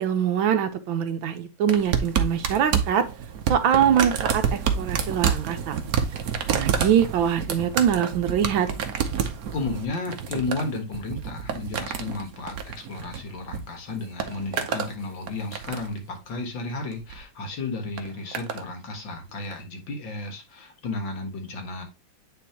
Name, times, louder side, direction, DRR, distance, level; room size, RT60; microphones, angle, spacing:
voice 1, 0.0-3.0 3.5-5.8 6.5-8.7, right 9 dB, 70° right, 1.5 m, -23 dB
sound 1, 1.7-13.6 13.9-14.9 15.3-16.0 16.9-17.2 18.0-18.6 19.5-19.6, right 7 dB, 55° right, 1.1 m, -28 dB
voice 2, 9.5-21.8, left 3 dB, 65° left, 2.2 m, -33 dB
9.5 x 3.9 x 2.8 m
omnidirectional pair, 2.3 m